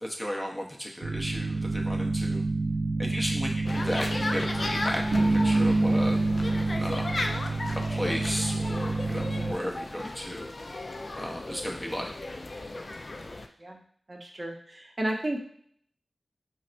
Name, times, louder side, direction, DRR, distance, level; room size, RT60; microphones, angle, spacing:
voice 1, 0.0-2.4 3.0-6.2 6.8-7.1 7.7-10.5 11.2-12.1, equal, 5° left, -1 dB, 0.6 m, -34 dB
sound 1, 1.0-9.6, right 2 dB, 85° right, 0.3 m, -27 dB
sound 2, 3.6-13.5, left 2 dB, 50° left, 0.3 m, -35 dB
voice 2, 14.1-15.4, right 1 dB, 40° right, 0 dB, 0.6 m, -32 dB
4.2 x 2.0 x 2.5 m, 0.62 s
wide cardioid pair, 55°, 0 cm